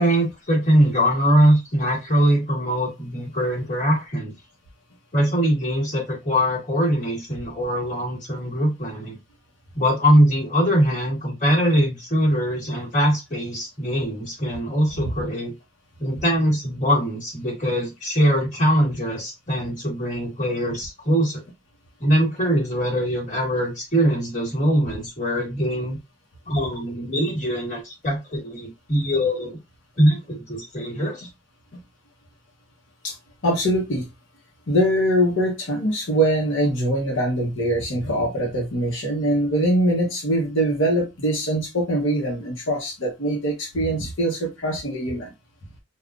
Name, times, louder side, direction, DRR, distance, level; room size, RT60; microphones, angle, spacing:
voice 1, 0.0-4.3 5.1-9.2 9.7-15.5 16.0-21.4 22.0-26.0 26.5-29.5 30.0-31.3, equal, 40° left, -3 dB, 1.4 m, -22 dB
voice 2, 33.4-34.1 34.7-45.3, right 1 dB, 85° left, -1 dB, 0.9 m, -23 dB
3.6 x 2.3 x 2.4 m, 0.23 s
head